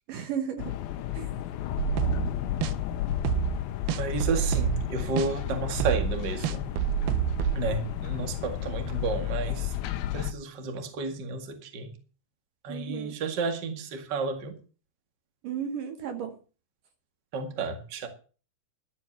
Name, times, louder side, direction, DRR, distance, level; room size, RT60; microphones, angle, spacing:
voice 1, 0.1-0.7 1.1-1.3 12.7-13.2 15.4-16.4, right 8 dB, 70° right, 2.5 m, -34 dB
sound 1, 0.6-10.3, left 12 dB, 85° left, 2.7 m, -32 dB
sound 2, 1.8-2.3 2.6-2.7 3.1-3.6 3.9-4.9 5.2-5.3 5.7-7.6, right 13 dB, 85° right, 2.9 m, -28 dB
voice 2, 4.0-6.7 7.5-9.7 10.1-12.0 12.6-14.6 17.3-18.1, right 4 dB, 35° right, 2.1 m, -32 dB
13.0 x 8.5 x 6.7 m
omnidirectional pair, 4.3 m